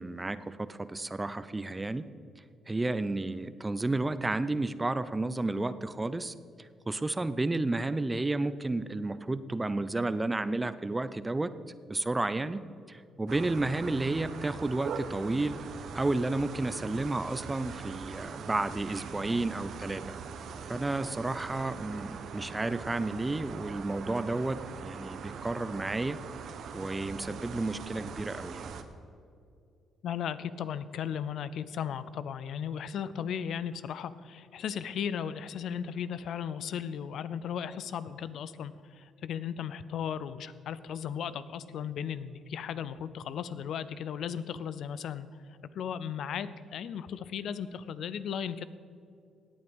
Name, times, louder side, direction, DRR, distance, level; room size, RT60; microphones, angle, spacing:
voice 1, 0.0-2.0 2.7-6.3 6.9-11.5 11.9-12.6 12.9-15.6 15.9-20.1 20.7-26.2 26.7-28.7, right 2 dB, 20° right, 14 dB, 0.6 m, -31 dB
sound 1, 13.3-28.8, right 6 dB, 70° right, 1.0 m, -42 dB
voice 2, 30.0-48.7, left 8 dB, 70° left, 15 dB, 0.5 m, -36 dB
17.0 x 8.7 x 5.3 m, 2.5 s
cardioid pair, 90°, 0 cm